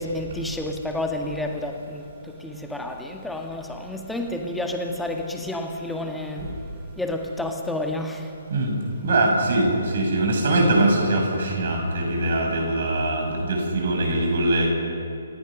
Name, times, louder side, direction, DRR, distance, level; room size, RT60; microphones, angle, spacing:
voice 1, 0.0-2.0 2.4-6.5 7.0-8.3, left 1 dB, 5° left, 2 dB, 1.8 m, -30 dB
voice 2, 9.0-14.7, right 1 dB, 50° right, 1 dB, 6.5 m, -22 dB
28.5 x 16.0 x 6.2 m, 2.6 s
figure-of-eight pair, 135°, 0 cm